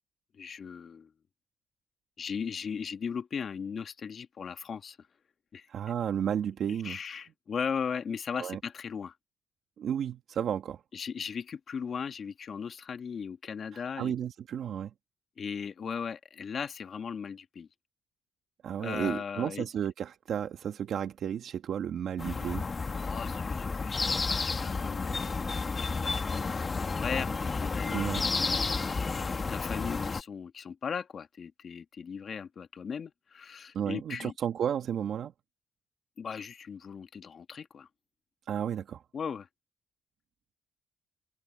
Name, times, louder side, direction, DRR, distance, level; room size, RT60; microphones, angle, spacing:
voice 1, 0.3-1.1 2.2-5.0 5.5-5.7 6.7-9.1 10.9-14.1 15.4-17.7 18.8-19.7 23.0-28.0 28.3-28.6 29.5-34.3 36.2-37.9 39.1-39.5, left 6 dB, 50° left, 1.7 m, -38 dB
voice 2, 5.7-7.0 8.4-8.6 9.8-10.8 13.7-14.9 18.6-22.7 27.9-28.2 33.7-35.3 38.5-39.0, right 9 dB, 65° right, 1.7 m, -32 dB
sound 1, 22.2-30.2, left 4 dB, 30° left, 1.9 m, -31 dB
cardioid pair, 90°, 0 cm